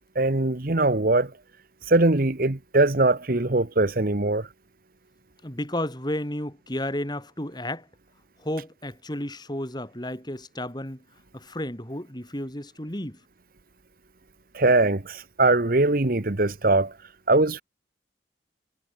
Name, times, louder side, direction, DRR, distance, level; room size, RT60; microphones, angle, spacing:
voice 1, 0.1-1.3 1.9-4.5 14.5-16.9 17.3-17.6, right 2 dB, 50° right, 1.2 m, -21 dB
voice 2, 5.4-7.9 8.4-11.0 11.3-13.2, left 1 dB, 20° left, 3.1 m, -32 dB
head